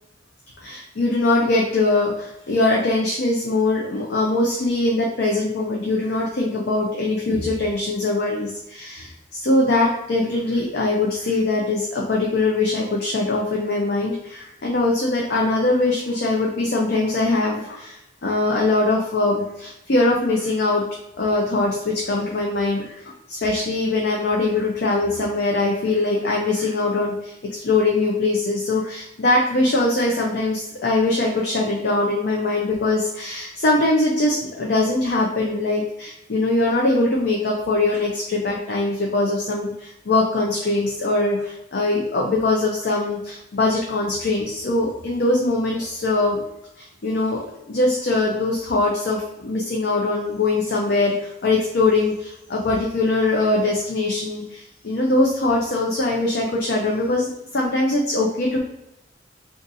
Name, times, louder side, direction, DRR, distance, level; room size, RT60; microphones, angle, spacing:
voice 1, 0.6-20.8 21.2-46.4 46.8-58.6, left 2 dB, 60° left, -2 dB, 0.5 m, -22 dB
2.5 x 2.5 x 3.9 m, 0.85 s
head